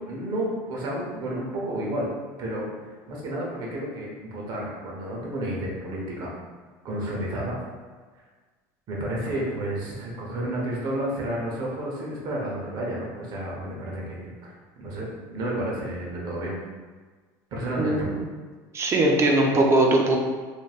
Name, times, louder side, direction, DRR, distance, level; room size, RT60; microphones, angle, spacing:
voice 1, 0.0-2.1 2.4-6.3 6.8-7.6 8.9-14.5 14.8-16.6 17.5-18.1, right 1 dB, 50° right, -3 dB, 0.8 m, -31 dB
voice 2, 17.8-18.2 18.7-20.2, right 1 dB, 30° right, 1 dB, 0.5 m, -20 dB
3.0 x 2.6 x 2.4 m, 1.4 s
supercardioid pair, 110°, 9 cm